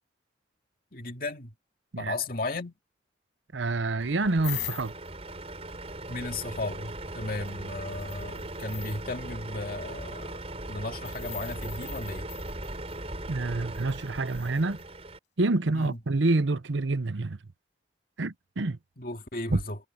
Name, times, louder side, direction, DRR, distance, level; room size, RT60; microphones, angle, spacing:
voice 1, 0.9-1.5 2.0-2.7 6.1-10.4 10.7-12.3 15.7-16.0 19.0-19.8, left 2 dB, 50° left, 2.4 m, -35 dB
voice 2, 3.5-4.9 13.3-14.8 15.4-17.4 18.2-18.8 19.5-19.6, right 2 dB, 85° right, 0.8 m, -27 dB
Truck, 4.0-15.2, right 1 dB, 35° right, 4.8 m, -39 dB
sound 1, 4.4-5.1 7.4-7.5 7.9-9.0 11.0-13.0 13.7-14.8 15.8-15.9, left 13 dB, 65° left, 6.8 m, -42 dB
head